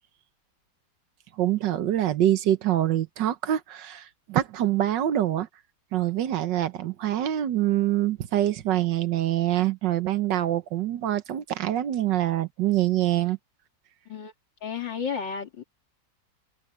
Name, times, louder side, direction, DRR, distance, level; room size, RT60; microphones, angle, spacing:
voice 1, 1.4-5.5 5.9-13.4, right 12 dB, 80° right, 1.6 m, -25 dB
voice 2, 14.6-15.6, left 6 dB, 90° left, 3.4 m, -32 dB
omnidirectional pair, 1.9 m